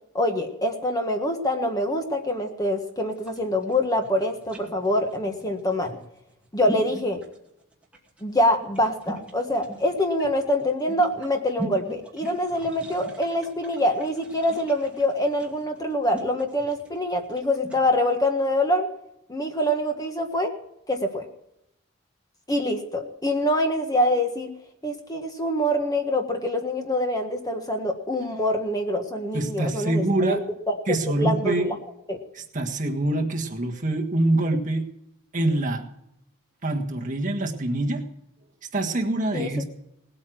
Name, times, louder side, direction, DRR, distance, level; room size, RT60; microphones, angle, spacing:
voice 1, 0.1-6.0 6.5-7.2 8.2-18.9 19.3-20.5 20.9-21.3 22.5-24.5 24.8-30.4 30.7-31.8 32.1-32.2 39.3-39.6, left 1 dB, 15° left, 4 dB, 1.5 m, -25 dB
sound 1, 3.1-17.9, right 1 dB, 5° right, 2.4 m, -40 dB
voice 2, 29.3-30.4 30.9-31.7 32.3-34.9 35.3-35.9 36.6-38.1 38.7-39.6, right 2 dB, 35° right, 2 dB, 1.6 m, -25 dB
19.0 x 8.7 x 6.2 m, 0.83 s
head